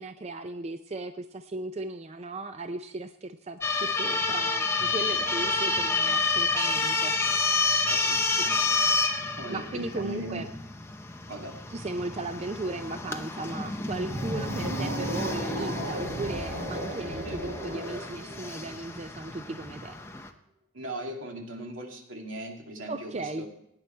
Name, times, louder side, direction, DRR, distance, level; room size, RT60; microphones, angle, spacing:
voice 1, 0.0-7.1 8.4-8.5 9.5-10.5 11.7-20.0 22.9-23.5, right 2 dB, 30° right, 8 dB, 0.4 m, -36 dB
sound 1, 3.6-20.3, left 3 dB, 15° left, 0.7 m, -29 dB
voice 2, 7.9-8.7 9.3-10.4 11.3-11.6 17.2-17.4 20.7-23.5, right 1 dB, 75° right, 1 dB, 2.3 m, -39 dB
sound 2, 13.9-19.1, right 1 dB, 60° right, 4.5 m, -35 dB
16.5 x 9.8 x 4.4 m, 0.78 s
head